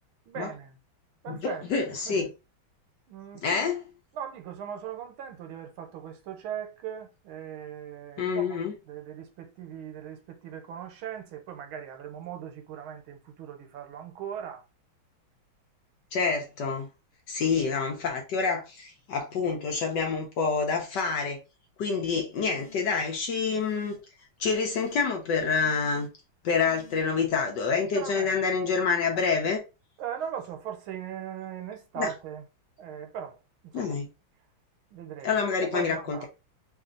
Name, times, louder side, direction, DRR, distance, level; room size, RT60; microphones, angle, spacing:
voice 1, 0.3-0.8 1.2-2.3 3.1-3.7 4.1-8.6 8.9-14.6 27.9-28.4 30.0-32.4 32.8-33.4 33.6-34.0 34.9-36.3, right 8 dB, 75° right, 1.6 m, -39 dB
voice 2, 1.3-2.3 3.4-3.8 8.2-8.7 16.1-16.9 17.3-21.4 21.8-24.0 24.4-26.1 26.4-29.6 32.0-32.1 33.7-34.1 35.2-36.3, left 5 dB, 65° left, 1.1 m, -27 dB
sound 1, 22.4-23.1 23.5-24.0 24.5-25.1 25.5-26.1 26.6-27.0, left 5 dB, 35° left, 1.1 m, -51 dB
3.4 x 2.7 x 3.7 m
omnidirectional pair, 2.4 m